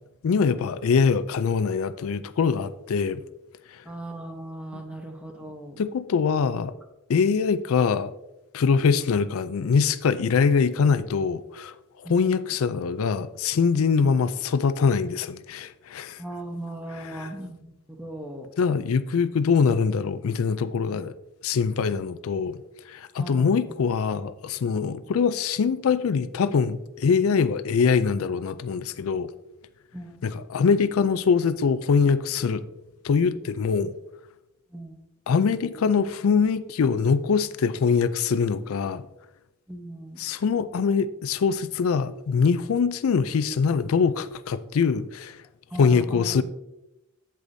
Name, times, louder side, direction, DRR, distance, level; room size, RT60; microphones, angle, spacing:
voice 1, 0.2-3.2 3.7-3.8 4.7-4.8 5.8-6.7 7.1-8.1 8.5-16.2 17.0-17.3 18.6-21.1 21.4-29.3 30.2-32.6 33.0-33.9 35.3-39.1 40.2-45.4 45.8-46.4, left 5 dB, 85° left, 0.4 m, -23 dB
voice 2, 3.9-5.8 12.0-12.5 14.0-14.1 16.2-18.5 23.2-23.7 29.9-30.2 34.7-35.0 39.7-40.2 45.7-46.4, right 1 dB, 5° right, 0.9 m, -38 dB
8.2 x 7.6 x 2.7 m
head